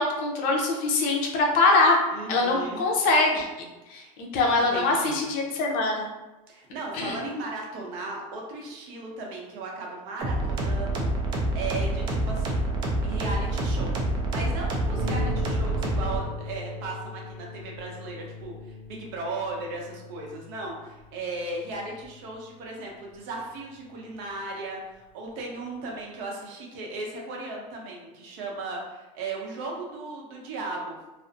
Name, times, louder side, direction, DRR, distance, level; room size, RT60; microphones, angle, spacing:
voice 1, 0.0-2.0 2.3-3.5 3.9-6.1 6.9-7.2, left 3 dB, 50° left, 0 dB, 0.6 m, -23 dB
voice 2, 2.1-2.8 3.9-4.1 4.7-5.3 6.5-11.1 11.5-12.6 13.0-13.9 14.3-30.9, right 2 dB, 55° right, -1 dB, 0.7 m, -36 dB
sound 1, 10.2-16.2, right 1 dB, 25° right, 0.4 m, -27 dB
Harp, 14.9-24.1 24.9-25.0 25.5-25.6, left 3 dB, 10° left, 1.2 m, -40 dB
2.4 x 2.0 x 2.5 m, 1.1 s
supercardioid pair, 145°, 18 cm